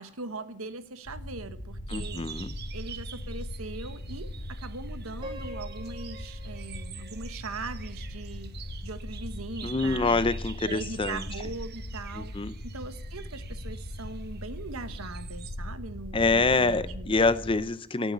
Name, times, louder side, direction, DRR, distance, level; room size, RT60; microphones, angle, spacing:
voice 1, 0.0-2.3 2.7-8.5 8.8-10.3 10.6-12.3 12.6-17.1, right 3 dB, 70° right, 10 dB, 1.3 m, -40 dB
sound 1, 1.1-17.6, left 1 dB, 75° left, 2.8 m, -39 dB
voice 2, 1.9-2.5 9.6-11.2 12.2-12.5 16.1-18.1, left 3 dB, 25° left, 15 dB, 0.5 m, -26 dB
sound 2, 1.9-15.5, right 9 dB, 45° right, 1.0 m, -47 dB
Piano, 5.2-8.2, equal, 25° right, 3.4 m, -46 dB
17.5 x 7.9 x 8.4 m, 0.71 s
head